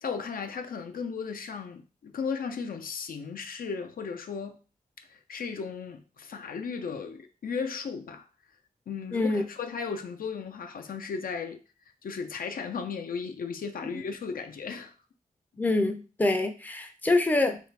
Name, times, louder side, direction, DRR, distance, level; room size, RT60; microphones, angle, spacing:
voice 1, 0.0-4.6 5.0-8.2 8.9-11.6 12.0-14.9, left 5 dB, 75° left, 0.4 m, -35 dB
voice 2, 9.1-9.4 15.6-17.6, left 2 dB, 10° left, 0.4 m, -25 dB
3.2 x 2.5 x 3.2 m
wide cardioid pair, 90°, 15 cm